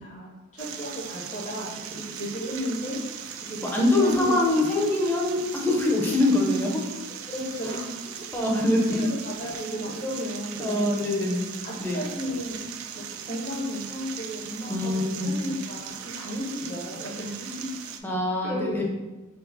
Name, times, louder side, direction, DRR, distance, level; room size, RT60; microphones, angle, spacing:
voice 1, 0.0-3.2 3.5-4.4 7.3-8.4 8.9-11.1 11.6-12.6 13.0-17.6 18.4-19.0, equal, 35° left, -6 dB, 0.8 m, -34 dB
sound 1, 0.6-18.0, right 8 dB, 85° right, 0.3 m, -39 dB
voice 2, 3.7-6.8 8.3-9.0 10.6-11.5 11.8-12.0 14.7-15.3 18.0-19.0, left 1 dB, 10° left, -2 dB, 0.6 m, -24 dB
4.6 x 2.0 x 3.9 m, 1.1 s
head